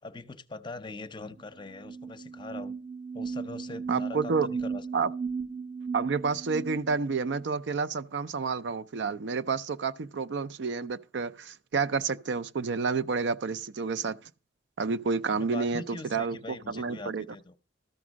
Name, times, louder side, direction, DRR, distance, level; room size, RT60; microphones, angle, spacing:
voice 1, 0.0-2.7 3.1-4.8 15.4-17.5, left 3 dB, 25° left, 0.6 m, -42 dB
sound 1, 1.4-1.5 1.7-7.4, right 5 dB, 25° right, 0.7 m, -36 dB
voice 2, 3.9-4.5 4.9-5.1 5.9-14.3 14.8-17.3, right 4 dB, 70° right, 0.5 m, -30 dB
13.5 x 6.0 x 6.2 m
head